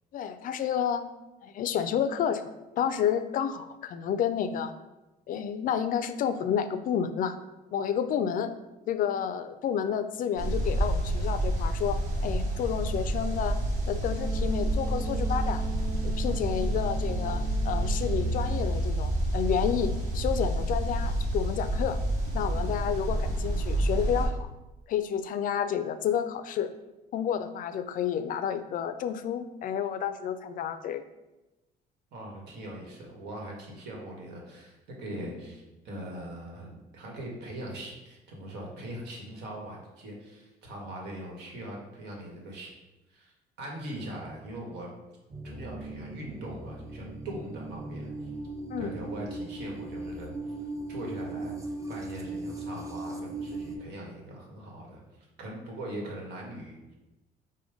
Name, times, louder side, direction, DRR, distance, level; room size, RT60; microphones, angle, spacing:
voice 1, 0.1-1.0 1.4-2.5 2.8-4.7 5.3-7.4 7.7-8.5 8.9-13.6 13.9-15.6 16.0-22.0 22.3-24.5 24.9-26.7 27.1-31.0 35.2-35.3 48.7-48.9, left 8 dB, 55° left, 11 dB, 0.4 m, -30 dB
sound 1, 10.4-24.3, right 1 dB, 45° right, 1.5 m, -29 dB
Wind instrument woodwind instrument, 14.0-18.9, right 4 dB, 70° right, 1.0 m, -40 dB
voice 2, 32.1-42.7 43.1-44.9 45.4-48.3 48.8-50.5 50.9-51.6 51.9-56.8, right 1 dB, 85° right, -1 dB, 1.3 m, -41 dB
sound 2, 45.3-53.8, right 2 dB, 20° right, 0.6 m, -38 dB
5.1 x 2.2 x 4.8 m, 1.0 s
cardioid pair, 110°, 17 cm